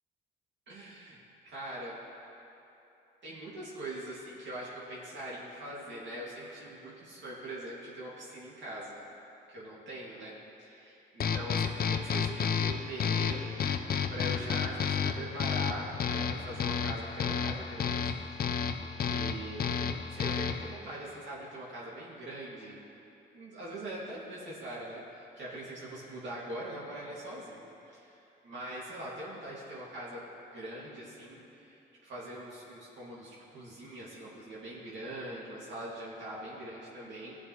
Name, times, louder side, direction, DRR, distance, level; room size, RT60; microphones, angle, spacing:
voice 1, 0.7-1.2 1.5-2.0 3.2-9.0 9.5-10.3 10.6-18.1 18.8-22.8 23.3-30.2 30.5-37.4, right 1 dB, 70° right, -7 dB, 2.4 m, -42 dB
sound 1, 11.2-20.8, left 7 dB, 50° left, 0.6 m, -31 dB
17.0 x 7.3 x 3.2 m, 3.0 s
cardioid pair, 90°, 20 cm